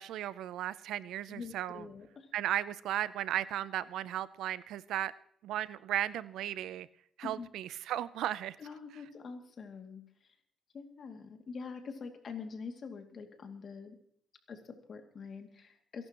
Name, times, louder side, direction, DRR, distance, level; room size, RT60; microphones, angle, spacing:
voice 1, 0.0-1.9 2.3-5.1 5.4-6.9 7.2-8.6, right 12 dB, 85° right, 17 dB, 0.5 m, -35 dB
voice 2, 1.3-2.3 7.2-7.5 8.6-10.3 10.7-14.0 14.5-16.1, left 5 dB, 50° left, 4 dB, 2.4 m, -45 dB
28.5 x 11.5 x 3.0 m, 0.63 s
cardioid pair, 90°, 0 cm